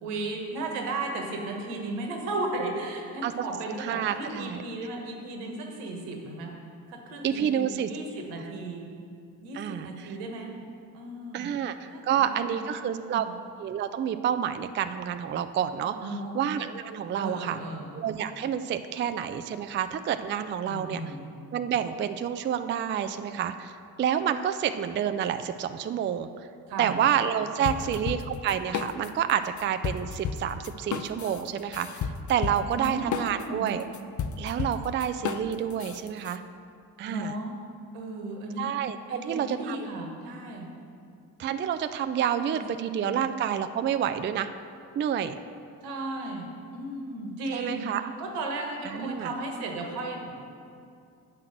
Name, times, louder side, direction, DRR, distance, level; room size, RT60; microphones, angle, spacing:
voice 1, 0.0-6.5 6.9-8.8 9.4-10.5 10.9-11.5 11.9-13.4 16.0-16.4 17.1-17.9 20.7-21.2 26.7-27.0 27.6-28.0 32.7-33.7 37.1-37.5 37.9-38.7 39.1-40.7 42.4-43.3 45.8-47.9 48.2-50.3, right 2 dB, 75° right, 2 dB, 1.4 m, -35 dB
voice 2, 3.8-4.6 7.2-7.9 9.5-10.1 11.3-13.3 13.6-16.0 16.3-17.6 17.9-21.0 21.5-26.3 26.8-33.8 34.4-36.4 37.0-37.3 38.6-39.8 41.4-44.5 45.0-45.4 47.5-48.1 48.8-49.3, right 9 dB, 25° right, 10 dB, 0.4 m, -29 dB
sound 1, 27.6-29.3 29.6-36.4, left 6 dB, 40° left, 0.7 m, -33 dB
7.6 x 5.7 x 7.6 m, 2.4 s
hypercardioid pair, 45°, 49 cm